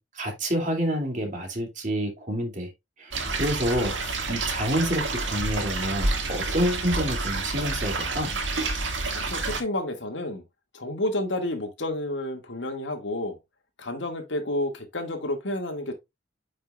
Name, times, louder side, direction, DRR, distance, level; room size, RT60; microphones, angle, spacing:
voice 1, 0.0-2.7 3.0-8.3, equal, 40° right, 2.3 m, -28 dB
sound 1, 3.1-9.6, right 3 dB, 75° right, 1.9 m, -29 dB
voice 2, 9.1-10.4 10.7-13.4 13.8-15.9, left 1 dB, 70° left, 1.9 m, -30 dB
9.2 x 5.3 x 2.3 m
head